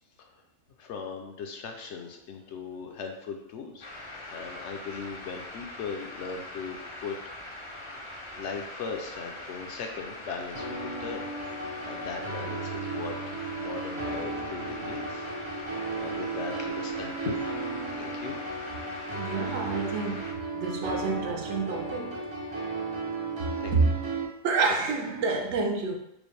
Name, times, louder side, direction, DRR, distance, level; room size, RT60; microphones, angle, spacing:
voice 1, 0.8-3.9 4.3-7.1 7.5-7.7 8.3-11.2 11.6-13.2 13.6-15.3 15.5-17.6 17.9-18.4 23.6-23.7 24.7-24.8, left 5 dB, 70° left, 3 dB, 0.8 m, -38 dB
sound 1, 3.8-20.3, left 1 dB, 45° left, 0.4 m, -42 dB
sound 2, 10.5-24.2, right 3 dB, 35° right, 0.5 m, -35 dB
voice 2, 19.2-22.2 23.7-24.0 24.4-26.0, right 4 dB, 70° right, 2 dB, 0.9 m, -28 dB
5.0 x 2.1 x 3.2 m, 0.79 s
omnidirectional pair, 1.3 m